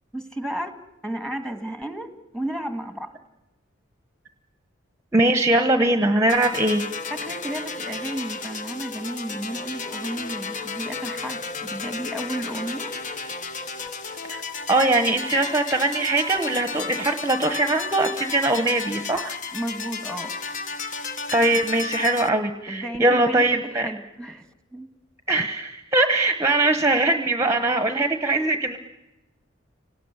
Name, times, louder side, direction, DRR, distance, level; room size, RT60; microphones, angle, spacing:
voice 1, 0.1-0.8 1.0-3.1 7.1-12.9 19.5-20.3 22.7-23.4 23.8-24.4 24.7-24.9, right 1 dB, 5° left, 7 dB, 1.8 m, -33 dB
voice 2, 5.1-6.8 14.3-14.4 14.7-19.3 21.3-23.9 25.3-28.8, right 2 dB, 15° right, 7 dB, 1.1 m, -21 dB
sound 1, 6.3-22.3, left 4 dB, 40° left, 1.2 m, -33 dB
29.5 x 19.0 x 9.8 m, 1.1 s
head